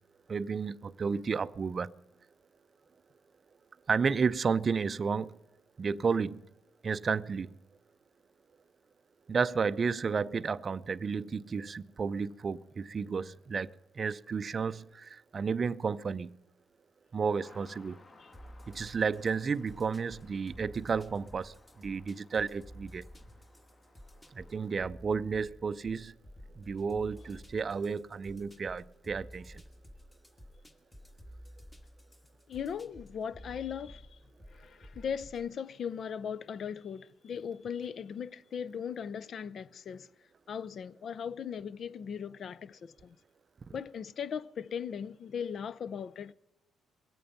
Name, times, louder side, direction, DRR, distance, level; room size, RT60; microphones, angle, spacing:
voice 1, 0.3-1.9 3.9-5.4 5.8-6.5 6.8-7.5 9.3-13.7 13.9-16.4 17.1-18.0 18.7-23.0 24.3-26.1 26.6-29.6, right 5 dB, 40° right, 0.5 m, -32 dB
sound 1, 17.4-24.7, left 2 dB, 35° left, 1.5 m, -60 dB
sound 2, 18.3-35.5, equal, 20° left, 1.6 m, -52 dB
voice 2, 32.5-34.2 34.5-40.1 40.5-43.2 43.7-46.3, left 7 dB, 55° left, 0.6 m, -38 dB
21.5 x 8.6 x 5.8 m
cardioid pair, 90°, 0 cm